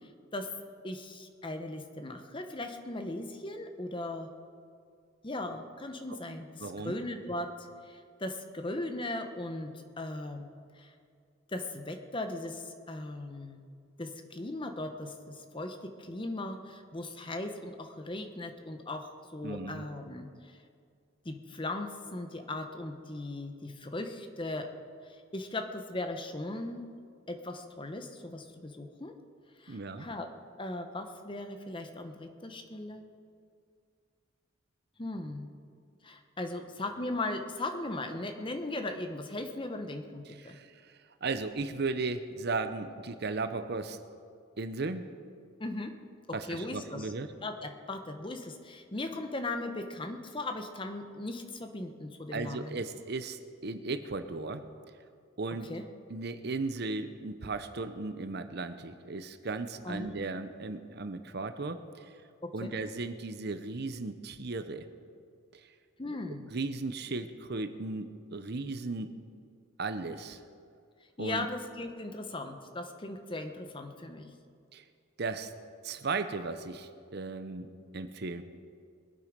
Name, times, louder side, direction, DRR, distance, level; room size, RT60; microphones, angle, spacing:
voice 1, 0.8-4.3 5.2-10.9 11.5-13.6 14.0-20.6 21.2-24.7 25.3-26.9 27.3-29.1 29.6-30.3 30.6-33.1 35.0-35.5 36.0-40.6 45.6-45.9 46.3-47.1 47.4-52.8 55.7-55.8 59.8-60.1 62.4-62.7 66.0-66.5 71.2-74.3, left 2 dB, 25° left, 6 dB, 0.9 m, -38 dB
voice 2, 6.6-6.9 19.4-19.9 29.7-30.1 40.4-40.7 41.2-44.0 44.6-45.0 46.3-47.3 52.3-54.7 55.4-55.7 56.1-62.1 62.5-64.9 65.5-65.6 66.1-66.2 66.5-69.1 69.8-70.4 71.2-71.5 74.7-74.8 75.2-75.5 75.8-78.4, right 3 dB, 50° right, 10 dB, 0.7 m, -36 dB
22.5 x 8.4 x 5.2 m, 2.3 s
head